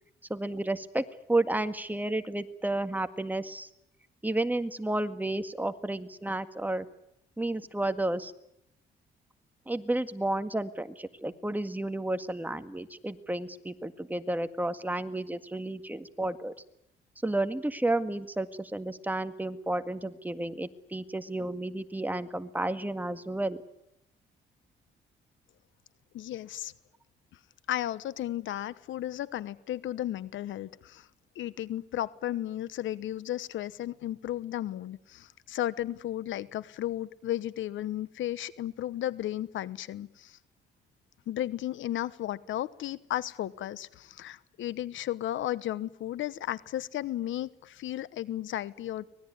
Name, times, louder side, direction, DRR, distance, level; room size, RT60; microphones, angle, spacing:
voice 1, 0.3-3.7 4.2-6.9 7.4-8.3 9.7-16.5 17.2-23.6, right 2 dB, 10° right, 9 dB, 1.8 m, -31 dB
voice 2, 26.1-26.7 27.7-31.1 31.3-40.4 41.3-49.1, left 13 dB, 75° left, 17 dB, 1.1 m, -34 dB
25.0 x 20.0 x 9.6 m, 0.80 s
cardioid pair, 90°, 20 cm